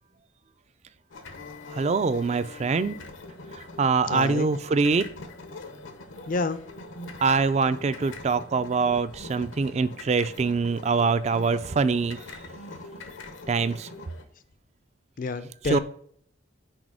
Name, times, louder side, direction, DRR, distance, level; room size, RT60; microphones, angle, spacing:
sound 1, 1.1-14.2, left 2 dB, 80° left, 0.9 m, -43 dB
voice 1, 1.7-3.0 3.6-5.0 7.2-12.2 13.5-13.9 15.7-15.8, right 4 dB, 35° right, 0.3 m, -24 dB
voice 2, 4.1-4.5 6.3-6.6 15.2-15.8, left 3 dB, 45° left, 0.4 m, -28 dB
6.1 x 4.3 x 4.8 m
head